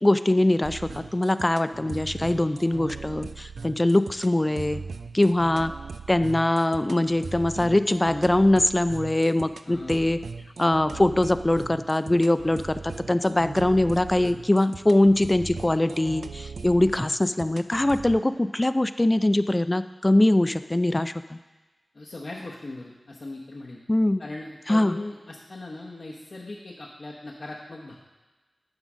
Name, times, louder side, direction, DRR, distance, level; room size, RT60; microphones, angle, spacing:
voice 1, 0.0-4.8 5.1-5.7 6.1-10.2 10.6-21.4 23.9-24.2 24.7-24.9, left 1 dB, 20° left, 12 dB, 0.3 m, -22 dB
sound 1, 0.6-18.2, right 4 dB, 85° right, 0.3 m, -39 dB
voice 2, 9.6-10.1 21.9-23.8 24.2-27.9, left 2 dB, 60° left, -5 dB, 1.0 m, -39 dB
10.5 x 4.0 x 6.2 m, 1.2 s
wide cardioid pair, 90°, 0 cm